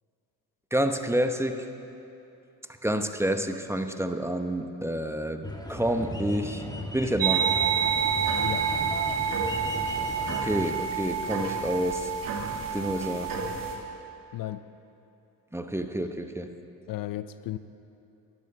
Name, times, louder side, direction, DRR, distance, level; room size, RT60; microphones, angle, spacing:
voice 1, 0.7-1.6 2.8-6.6 6.9-7.5 10.3-12.1 12.7-13.3 15.5-16.5, right 1 dB, 5° right, 7 dB, 1.0 m, -29 dB
sound 1, 5.4-10.7, left 1 dB, 10° left, 1.6 m, -37 dB
sound 2, 7.2-13.7, right 6 dB, 60° right, 1.9 m, -28 dB
voice 2, 16.9-17.6, left 14 dB, 60° left, 13 dB, 0.5 m, -34 dB
12.0 x 11.0 x 6.9 m, 2.8 s
supercardioid pair, 55°, 38 cm